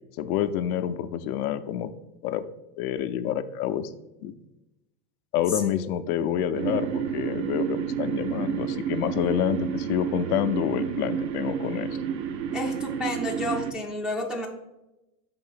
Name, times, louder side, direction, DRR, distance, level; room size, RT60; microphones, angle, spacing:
voice 1, 0.2-1.9 2.2-2.4 2.8-3.9 4.2-4.3 5.3-12.0, left 10 dB, 65° left, 10 dB, 0.6 m, -28 dB
voice 2, 5.5-5.9 12.5-14.5, left 1 dB, ahead, -2 dB, 0.4 m, -31 dB
sound 1, 6.5-13.7, right 8 dB, 85° right, 0.8 m, -30 dB
5.4 x 3.8 x 5.7 m, 0.96 s
hypercardioid pair, 110°, 48 cm